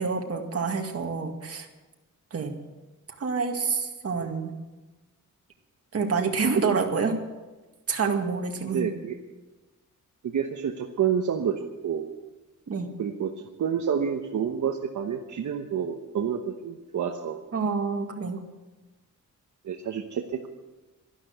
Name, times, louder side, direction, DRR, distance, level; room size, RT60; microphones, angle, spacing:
voice 1, 0.0-1.7 2.3-2.5 3.2-4.5 5.9-7.2 7.9-8.9 12.7-13.0 17.5-18.4, right 5 dB, 50° right, 3 dB, 2.0 m, -27 dB
voice 2, 8.7-9.2 10.2-12.1 13.0-13.3 13.6-17.5 19.6-20.5, right 7 dB, 70° right, 3 dB, 1.1 m, -29 dB
12.5 x 12.0 x 8.0 m, 1.2 s
wide cardioid pair, 165°, 31 cm